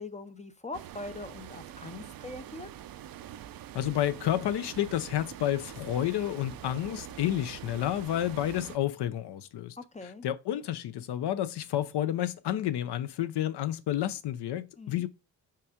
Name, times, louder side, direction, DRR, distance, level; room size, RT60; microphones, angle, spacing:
voice 1, 0.0-2.7 9.8-10.2 14.8-15.0, left 2 dB, 15° left, 0.5 m, -42 dB
sound 1, 0.7-8.8, right 11 dB, 55° right, 0.6 m, -45 dB
voice 2, 3.7-9.8 10.2-15.1, left 12 dB, 65° left, 0.8 m, -30 dB
5.8 x 3.5 x 5.0 m
cardioid pair, 90°, 43 cm